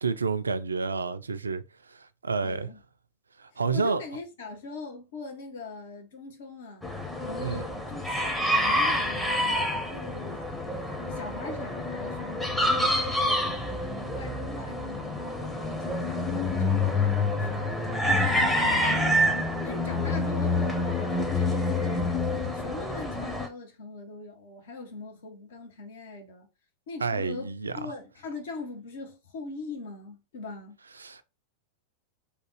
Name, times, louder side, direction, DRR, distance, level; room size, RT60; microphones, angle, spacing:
voice 1, 0.0-2.7 3.4-4.0 7.4-7.6 27.0-27.9 31.0-31.2, right 4 dB, 75° right, 0.3 m, -30 dB
voice 2, 2.4-2.8 3.5-10.4 11.1-13.8 14.1-17.8 18.2-22.2 22.5-26.5 26.9-30.8, left 3 dB, 60° left, 1.0 m, -41 dB
sound 1, 6.8-23.5, left 1 dB, 5° left, 0.7 m, -27 dB
3.4 x 2.3 x 3.1 m
figure-of-eight pair, 90°, 0 cm